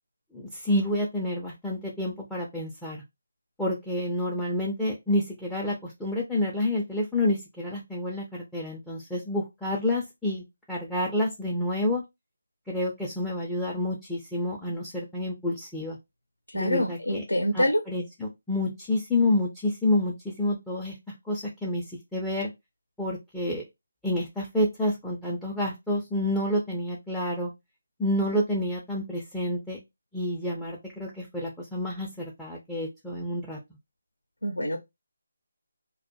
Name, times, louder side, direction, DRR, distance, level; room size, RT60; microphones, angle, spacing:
voice 1, 0.3-3.0 3.6-12.0 12.7-16.0 16.5-17.2 17.5-21.0 21.3-21.8 22.1-22.5 23.0-23.6 24.0-27.5 28.0-29.8 30.1-33.6, left 1 dB, 5° left, 0.4 m, -29 dB
voice 2, 16.5-17.8 34.4-34.8, equal, 80° left, 0.6 m, -26 dB
2.2 x 2.1 x 2.7 m
figure-of-eight pair, 150°, 0 cm